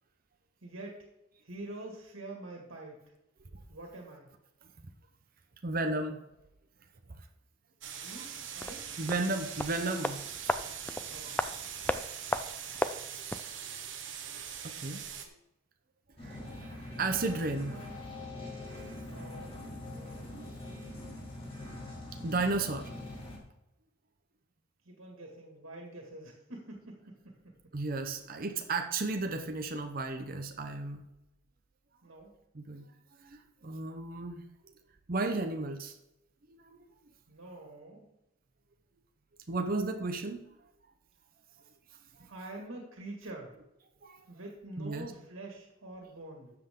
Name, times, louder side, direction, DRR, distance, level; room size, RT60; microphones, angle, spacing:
voice 1, 0.6-1.1 1.4-3.0 3.7-4.3 8.0-8.9 11.0-11.4 17.4-18.0 19.0-19.6 19.9-20.4 24.8-27.5 28.0-28.2 32.0-32.3 37.3-38.1 42.2-43.5 44.3-46.5, right 2 dB, 90° right, 0 dB, 2.0 m, -46 dB
voice 2, 5.6-6.2 7.1-7.3 8.0-8.1 9.0-10.2 11.2-11.4 13.4-14.0 14.3-15.3 16.2-17.8 18.3-18.4 18.7-18.8 19.1-19.2 20.3-20.5 22.2-22.9 27.7-31.1 32.5-32.9 33.2-34.4 35.1-36.0 36.5-36.8 39.5-40.4 42.1-42.3 44.0-44.2 44.8-45.1, right 3 dB, 45° right, 5 dB, 0.8 m, -34 dB
sound 1, 7.8-15.3, right 8 dB, 65° right, 1.2 m, -42 dB
sound 2, 8.6-13.6 13.8-13.9, left 2 dB, 10° left, 0.3 m, -36 dB
sound 3, 16.2-23.4, left 1 dB, 30° left, 2.6 m, -43 dB
12.5 x 7.7 x 3.7 m, 0.88 s
head